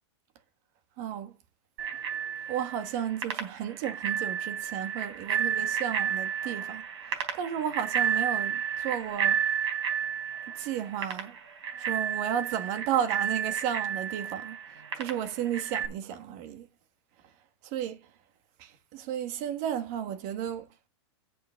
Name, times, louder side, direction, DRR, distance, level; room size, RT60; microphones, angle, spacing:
voice 1, 1.0-1.3 2.5-9.5 10.5-11.3 11.7-16.7 17.2-17.3 17.6-18.1 18.6-20.7, right 9 dB, 45° right, 1.4 m, -33 dB
Bicycle bell, 1.8-15.9, right 8 dB, 85° right, 3.8 m, -32 dB
8.4 x 6.9 x 5.7 m
supercardioid pair, 140°, 14 cm